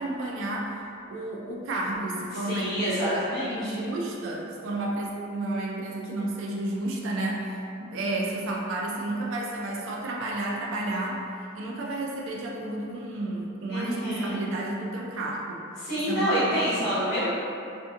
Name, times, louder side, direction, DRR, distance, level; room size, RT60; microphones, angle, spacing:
voice 1, 0.0-11.3 11.5-15.6 16.1-16.5 16.9-17.0, right 2 dB, 65° right, -2 dB, 0.3 m, -31 dB
voice 2, 2.3-3.8 13.7-14.4 15.8-17.3, equal, 50° left, -13 dB, 1.1 m, -27 dB
2.5 x 2.5 x 2.4 m, 2.6 s
head